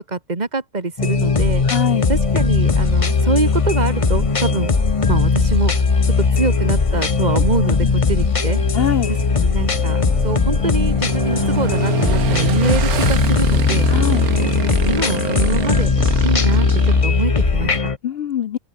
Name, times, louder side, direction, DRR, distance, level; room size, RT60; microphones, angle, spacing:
voice 1, 0.1-1.7 2.1-4.7 5.1-5.7 6.0-8.6 9.4-13.9 14.4-15.9 16.2-17.9, right 3 dB, 30° right, 2.5 m, -24 dB
sound 1, 1.0-18.0, left 4 dB, 25° left, 0.9 m, -18 dB
voice 2, 1.6-2.1 7.8-7.9 8.7-9.1 13.9-14.3 18.0-18.6, left 10 dB, 60° left, 0.7 m, -22 dB
sound 2, 1.8-17.8, left 4 dB, 80° left, 3.6 m, -30 dB
Motorcycle / Engine, 8.0-17.7, right 7 dB, 90° right, 1.9 m, -27 dB
open air
omnidirectional pair, 1.5 m